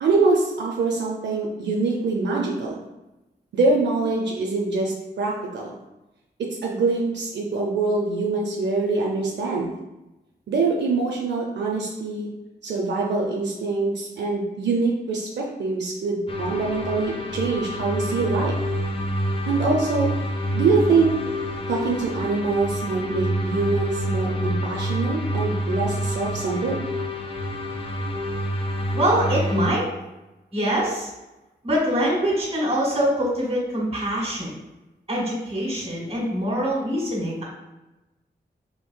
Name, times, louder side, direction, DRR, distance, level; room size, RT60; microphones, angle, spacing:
voice 1, 0.0-2.8 3.5-5.7 6.4-9.7 10.5-12.3 12.6-18.5 19.5-20.1 20.5-21.1 21.7-26.8, right 3 dB, 85° right, -1 dB, 0.4 m, -24 dB
sound 1, 16.3-29.7, equal, 30° left, 0.5 m, -27 dB
voice 2, 28.9-29.8 30.5-31.1 31.6-34.6 35.1-37.4, equal, 35° right, -3 dB, 1.4 m, -24 dB
3.7 x 2.6 x 2.2 m, 1.0 s
cardioid pair, 55°, 18 cm